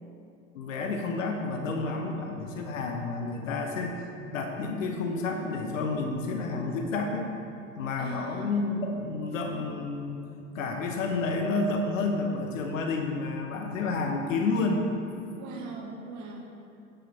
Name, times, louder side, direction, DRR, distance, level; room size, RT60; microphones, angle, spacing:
voice 1, 0.5-7.3 7.8-10.3 10.5-14.8, left 3 dB, 70° left, 3 dB, 1.0 m, -30 dB
voice 2, 8.0-8.6 15.4-16.5, right 3 dB, 45° right, 0 dB, 1.7 m, -40 dB
10.0 x 6.8 x 4.1 m, 2.5 s
figure-of-eight pair, 70°, 40 cm